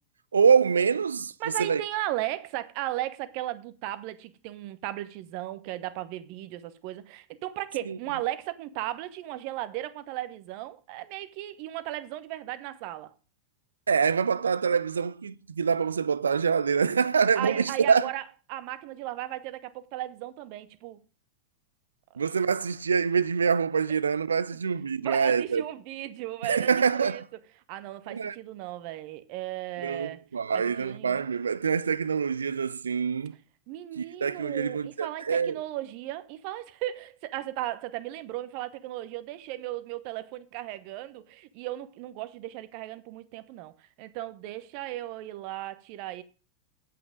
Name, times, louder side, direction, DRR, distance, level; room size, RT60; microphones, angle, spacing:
voice 1, 0.3-1.3 1.6-1.8 7.9-8.0 13.9-18.1 22.2-25.6 26.4-27.2 28.1-28.4 29.8-33.3 34.0-35.6, right 6 dB, 70° right, 0.5 m, -25 dB
voice 2, 1.4-13.1 17.3-18.2 18.5-21.0 25.0-27.2 27.7-30.2 30.5-31.2 33.7-43.7 44.0-46.2, right 15 dB, 45° right, 1.0 m, -36 dB
8.6 x 8.3 x 5.1 m
figure-of-eight pair, 90°, 0 cm